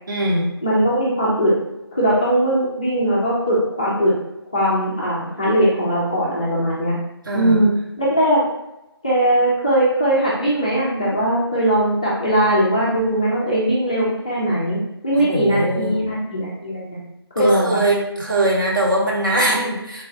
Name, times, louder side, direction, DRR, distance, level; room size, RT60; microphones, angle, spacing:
voice 1, 0.1-0.5 7.2-7.8 15.1-15.9 17.4-20.0, right 1 dB, 50° right, -2 dB, 0.8 m, -21 dB
voice 2, 0.6-1.5 1.9-4.1 4.5-6.9 7.3-8.4 9.0-14.8 15.0-17.0 17.4-17.8, right 1 dB, 15° left, -8 dB, 0.3 m, -19 dB
3.1 x 2.3 x 2.8 m, 0.90 s
figure-of-eight pair, 155°, 14 cm